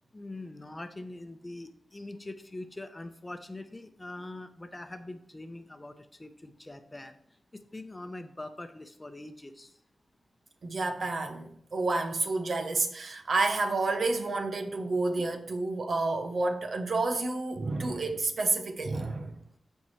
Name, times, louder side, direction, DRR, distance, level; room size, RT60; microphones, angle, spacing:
voice 1, 0.1-7.2 7.5-9.8, left 2 dB, 20° left, 0.8 m, -43 dB
voice 2, 10.6-19.3, right 3 dB, 65° right, 1.1 m, -30 dB
13.0 x 4.6 x 3.2 m
cardioid pair, 70°, 0 cm